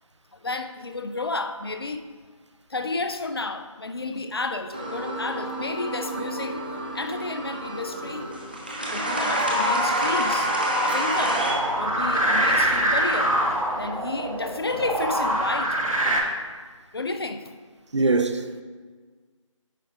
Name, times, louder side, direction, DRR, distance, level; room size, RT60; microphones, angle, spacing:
voice 1, 0.4-2.1 2.7-6.6 6.9-8.3 8.9-10.5 10.8-11.4 11.8-13.4 13.8-15.8 16.9-17.5, left 3 dB, 45° left, 0.5 m, -31 dB
sound 1, 4.7-11.5, equal, 15° right, 0.5 m, -27 dB
sound 2, 11.2-16.2, right 1 dB, 80° right, 1.2 m, -24 dB
voice 2, 17.9-18.6, right 3 dB, 60° right, 0.6 m, -22 dB
9.1 x 4.9 x 3.5 m
figure-of-eight pair, 165°, 17 cm